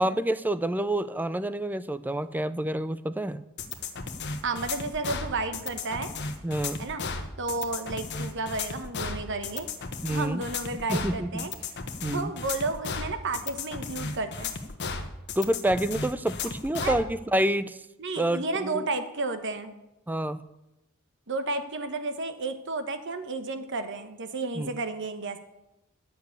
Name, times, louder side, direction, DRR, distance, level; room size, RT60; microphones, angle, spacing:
voice 1, 0.0-3.4 6.4-6.8 10.0-10.4 10.9-11.5 12.0-12.3 15.4-17.8 18.2-18.9 20.1-20.4 24.6-24.7, right 1 dB, 10° right, 14 dB, 0.4 m, -28 dB
sound 1, 3.6-17.0, left 4 dB, 55° left, 1.1 m, -34 dB
voice 2, 4.4-6.1 6.8-7.0 7.4-9.7 10.1-11.5 12.1-14.5 16.8-17.0 18.0-19.7 21.3-25.4, right 3 dB, 60° right, 9 dB, 1.1 m, -32 dB
10.5 x 7.0 x 8.1 m, 0.94 s
head